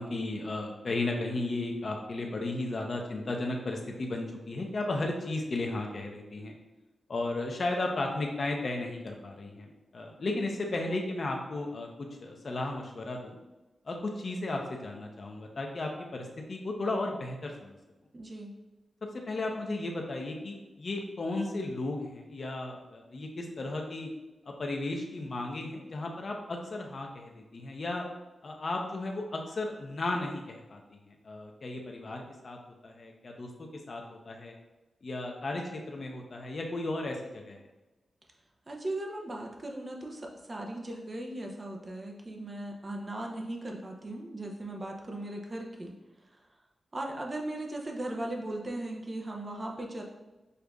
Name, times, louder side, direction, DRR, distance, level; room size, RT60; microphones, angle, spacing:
voice 1, 0.0-6.5 7.1-11.9 12.2-13.4 13.8-17.8 19.3-24.1 24.5-28.0 28.4-30.8 31.1-32.6 32.8-34.5 35.0-37.6, left 2 dB, 50° left, 1 dB, 0.7 m, -34 dB
voice 2, 18.1-18.5 38.7-45.9 46.9-50.0, right 1 dB, 30° right, 0 dB, 0.6 m, -38 dB
6.5 x 2.5 x 2.3 m, 1.1 s
wide cardioid pair, 100°, 0 cm